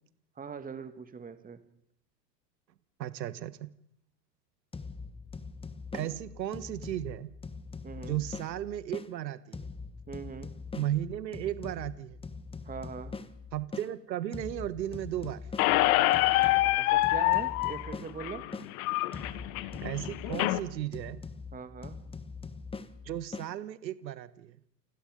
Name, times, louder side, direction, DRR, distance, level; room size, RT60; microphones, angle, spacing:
voice 1, 0.4-1.6 5.9-6.1 7.8-8.2 10.1-10.5 12.6-13.2 16.7-18.5 21.5-22.0, right 5 dB, 15° right, 9 dB, 2.3 m, -41 dB
voice 2, 3.0-3.7 5.9-7.3 8.0-9.7 10.7-12.2 13.5-15.4 19.8-21.2 23.0-24.6, right 12 dB, 80° right, 15 dB, 1.5 m, -35 dB
sound 1, 4.7-9.1 9.5-13.9 14.3-18.7 19.1-23.5, left 4 dB, 10° left, 1.5 m, -43 dB
Squeak, 15.6-20.6, left 17 dB, 55° left, 1.5 m, -26 dB
29.5 x 19.5 x 5.4 m, 0.71 s
hypercardioid pair, 105°, 50 cm